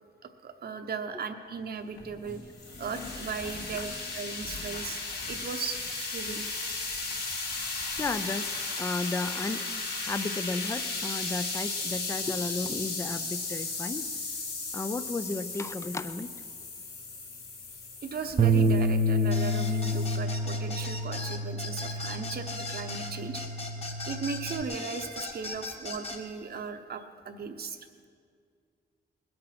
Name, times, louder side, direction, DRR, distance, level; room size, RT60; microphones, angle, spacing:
voice 1, 0.2-2.4 2.8-6.5 18.0-23.4 24.1-27.8, right 5 dB, 60° right, 6 dB, 0.9 m, -37 dB
sound 1, 1.9-20.1, left 3 dB, 60° left, 3.2 m, -36 dB
voice 2, 8.0-9.7 10.0-14.0 14.7-16.3, left 3 dB, 15° left, 12 dB, 0.4 m, -33 dB
Bass guitar, 18.4-24.6, right 1 dB, 35° right, 0.6 m, -28 dB
sound 2, 19.3-26.2, left 3 dB, 35° left, 1.5 m, -38 dB
20.5 x 8.7 x 5.9 m, 2.1 s
wide cardioid pair, 160°, 18 cm